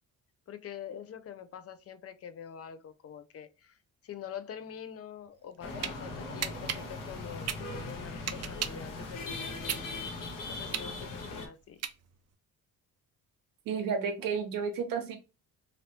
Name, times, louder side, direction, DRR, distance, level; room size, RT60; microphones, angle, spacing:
voice 1, 0.5-3.8 4.0-10.1 10.4-11.8, left 8 dB, 45° left, 0.5 m, -45 dB
sound 1, 5.4-5.9 6.4-8.9 9.3-12.3, right 9 dB, 50° right, 0.5 m, -36 dB
sound 2, 5.6-11.5, left 3 dB, 70° left, 1.0 m, -39 dB
voice 2, 13.6-15.2, right 6 dB, 75° right, 0.9 m, -32 dB
3.3 x 2.6 x 2.8 m
cardioid pair, 105°, 34 cm